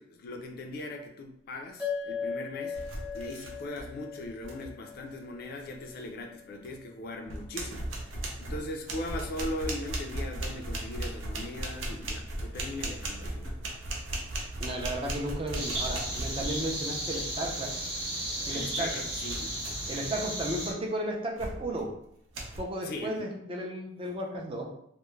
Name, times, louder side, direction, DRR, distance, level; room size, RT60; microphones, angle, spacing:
voice 1, 0.0-2.8 3.1-7.9 8.4-13.6 18.5-19.5 22.8-23.3, left 1 dB, 50° left, 3 dB, 0.3 m, -39 dB
sound 1, 1.8-6.5, left 6 dB, 5° right, 0.9 m, -39 dB
sound 2, 2.7-3.9 4.2-4.7 6.6-6.7 7.2-16.8 19.3-20.0 20.5-20.7 21.4-21.8 22.3-22.6, right 1 dB, 85° right, 0.5 m, -37 dB
voice 2, 14.6-17.8 18.5-18.9 19.9-22.0 22.6-24.7, right 1 dB, 30° right, 0 dB, 0.4 m, -34 dB
sound 3, 15.5-20.7, right 1 dB, 60° right, 0.8 m, -34 dB
2.3 x 2.0 x 3.0 m, 0.71 s
head